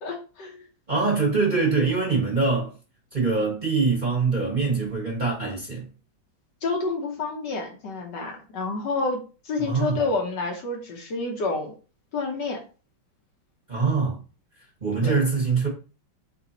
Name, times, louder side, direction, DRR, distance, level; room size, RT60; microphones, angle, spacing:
voice 1, 0.0-0.7 6.6-11.7 12.1-12.6 15.0-15.2, left 3 dB, 65° left, 1.4 m, -29 dB
voice 2, 0.9-2.7 3.1-5.9 9.6-10.0 13.7-14.2 14.8-15.7, right 4 dB, 25° right, 1.2 m, -23 dB
4.3 x 4.1 x 2.8 m
omnidirectional pair, 2.2 m